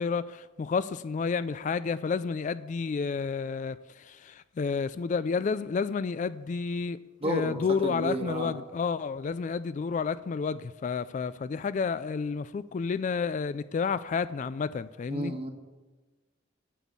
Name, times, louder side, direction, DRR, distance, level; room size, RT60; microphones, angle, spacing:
voice 1, 0.0-15.3, left 5 dB, 40° left, 15 dB, 0.3 m, -30 dB
voice 2, 7.2-8.5 15.1-15.5, right 1 dB, 30° right, 5 dB, 1.3 m, -32 dB
10.0 x 7.2 x 8.3 m, 1.3 s
head